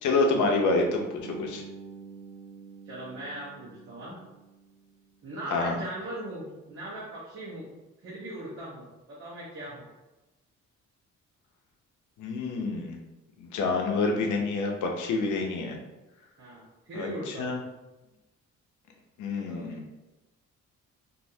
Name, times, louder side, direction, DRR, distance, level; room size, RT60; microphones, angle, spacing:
voice 1, 0.0-1.6 5.5-5.8 12.2-13.0 13.4-15.8 16.9-17.6 19.2-19.8, left 3 dB, 80° left, 2 dB, 0.7 m, -27 dB
Bass guitar, 1.2-5.3, right 5 dB, 40° left, 1.1 m, -47 dB
voice 2, 2.9-4.2 5.2-7.7 8.0-9.9 16.4-17.5 19.5-19.8, right 1 dB, 45° right, -8 dB, 1.1 m, -39 dB
3.1 x 2.6 x 2.7 m, 1.0 s
cardioid pair, 90°, 30 cm